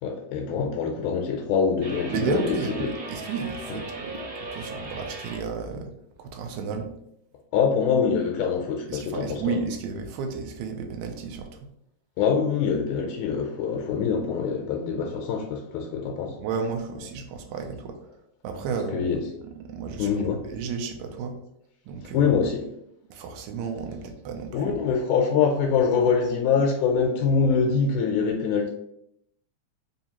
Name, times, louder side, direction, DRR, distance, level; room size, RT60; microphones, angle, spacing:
voice 1, 0.0-2.9 3.7-3.8 7.5-9.6 12.2-16.4 18.9-19.2 20.0-20.4 22.1-22.6 24.5-28.7, left 6 dB, 85° left, 1 dB, 2.0 m, -24 dB
sound 1, 1.8-5.4, right 2 dB, 50° right, 1.2 m, -37 dB
voice 2, 2.1-5.9 6.2-6.9 8.9-11.7 16.4-18.0 18.4-19.1 19.6-20.1 20.4-21.4 21.9-22.3 23.1-24.9, right 5 dB, 80° right, 4 dB, 1.9 m, -32 dB
4.8 x 2.7 x 2.8 m, 0.76 s
omnidirectional pair, 3.5 m